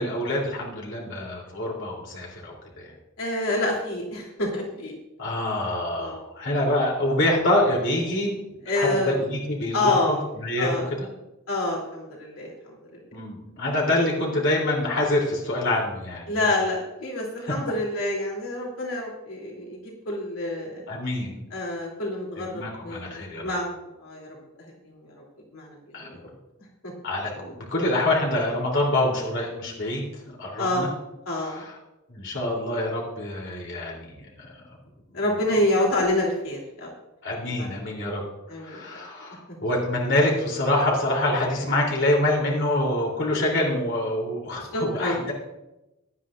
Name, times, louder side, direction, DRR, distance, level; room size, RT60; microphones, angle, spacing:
voice 1, 0.0-2.9 5.2-8.3 8.7-11.1 13.1-16.5 20.9-21.5 22.5-23.4 25.9-26.1 27.0-27.3 27.7-30.9 31.4-31.7 32.1-34.6 37.2-38.2 38.6-45.3, left 1 dB, 60° left, -2 dB, 3.1 m, -26 dB
voice 2, 3.2-5.0 6.0-6.2 8.6-9.2 9.7-10.2 10.6-10.9 11.5-13.0 16.3-20.8 21.5-24.3 24.6-25.2 25.5-26.2 26.8-26.9 27.3-27.5 30.6-30.9 31.3-31.6 35.1-36.9 37.4-37.9 38.5-38.8 44.6-45.2, left 2 dB, 80° left, -3 dB, 3.0 m, -28 dB
17.5 x 11.0 x 2.5 m, 0.96 s
head